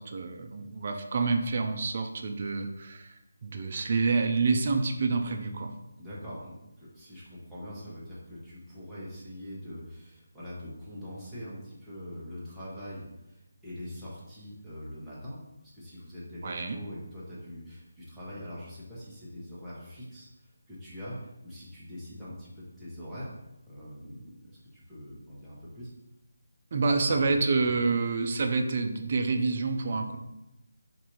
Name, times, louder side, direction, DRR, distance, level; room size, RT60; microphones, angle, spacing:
voice 1, 0.0-5.7 16.4-16.8 26.7-30.2, right 4 dB, 45° right, 4 dB, 0.4 m, -28 dB
voice 2, 6.0-15.4 15.7-23.3 23.7-25.9 26.9-27.2 27.5-27.7, equal, 5° right, -11 dB, 0.9 m, -43 dB
4.1 x 2.6 x 3.0 m, 0.93 s
figure-of-eight pair, 160°, 0 cm